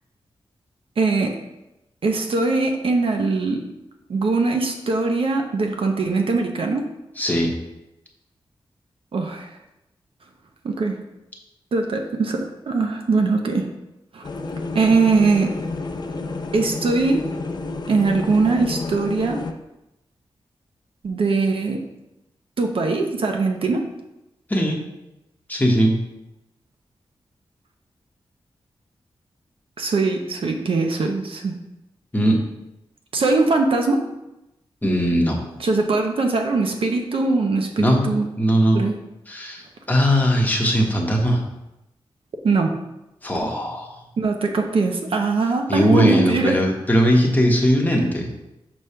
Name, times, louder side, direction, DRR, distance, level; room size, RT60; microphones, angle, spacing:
voice 1, 1.0-1.4 2.0-3.7 4.1-6.9 9.1-9.5 10.6-11.0 11.7-13.7 14.1-14.2 14.7-15.5 16.5-17.3 17.9-19.4 21.0-21.8 22.6-23.9 29.8-31.6 33.1-34.1 35.6-38.3 38.7-39.0 42.4-42.7 44.2-46.6, right 3 dB, 65° right, 3 dB, 0.7 m, -21 dB
voice 2, 7.2-7.5 24.5-24.8 25.5-26.0 32.1-32.4 34.8-35.4 37.8-38.1 38.4-38.8 39.3-41.4 43.2-43.9 45.7-48.3, equal, 15° left, 0 dB, 1.1 m, -19 dB
sound 1, 14.2-19.5, left 3 dB, 45° left, 0.5 m, -30 dB
6.1 x 3.2 x 5.6 m, 0.93 s
wide cardioid pair, 110°, 10 cm